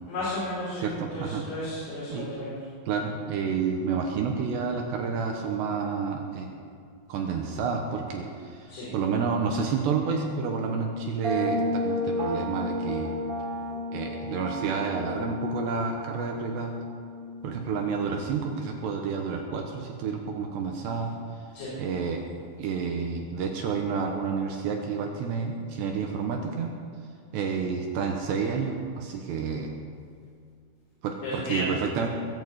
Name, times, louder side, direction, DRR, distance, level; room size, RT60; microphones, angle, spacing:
voice 1, 0.1-2.6 8.7-8.9 21.6-21.7 31.2-31.7, left 1 dB, 55° left, -11 dB, 7.1 m, -33 dB
voice 2, 0.7-1.4 2.1-2.3 2.9-6.5 7.1-13.1 13.9-16.7 17.4-21.1 21.8-22.2 22.6-26.7 27.3-29.8 31.0-32.1, right 5 dB, 70° right, 2 dB, 3.0 m, -30 dB
sound 1, 11.2-18.9, left 1 dB, 30° right, 3.4 m, -33 dB
21.5 x 7.3 x 8.0 m, 2.3 s
omnidirectional pair, 5.8 m